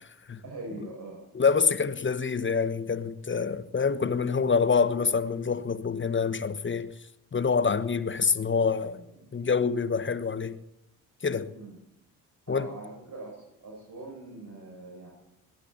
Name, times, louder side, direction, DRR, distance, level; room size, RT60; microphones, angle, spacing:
voice 1, 0.4-1.2 8.9-9.3 11.5-11.8 12.5-15.1, right 2 dB, 45° right, 7.3 m, -43 dB
voice 2, 1.3-6.9 7.3-9.0 9.3-10.6 11.2-11.5 12.5-12.7, left 5 dB, 25° left, 1.1 m, -26 dB
21.0 x 18.0 x 2.9 m
hypercardioid pair, 40°, 45 cm